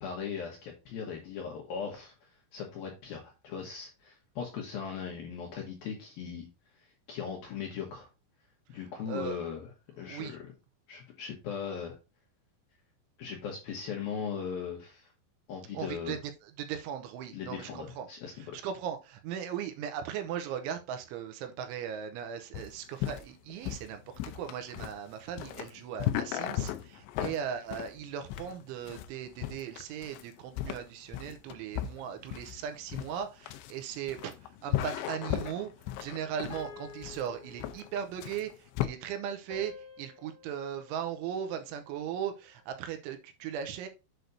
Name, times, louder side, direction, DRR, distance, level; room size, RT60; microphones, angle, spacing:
voice 1, 0.0-6.5 6.7-8.1 8.7-9.7 10.0-10.5 10.9-12.0 13.2-15.1 15.5-16.2 17.3-18.6 27.2-27.3, left 7 dB, 65° left, 0 dB, 2.6 m, -39 dB
voice 2, 9.1-9.4 10.0-10.4 15.7-16.2 16.6-18.1 18.4-24.0 24.4-35.7 36.0-43.9, right 8 dB, 85° right, 7 dB, 3.2 m, -38 dB
sound 1, 22.5-38.9, left 12 dB, 80° left, 2.7 m, -36 dB
sound 2, 36.5-38.3 39.5-41.9, left 5 dB, 20° left, 3.8 m, -51 dB
8.0 x 6.2 x 2.7 m, 0.28 s
omnidirectional pair, 5.5 m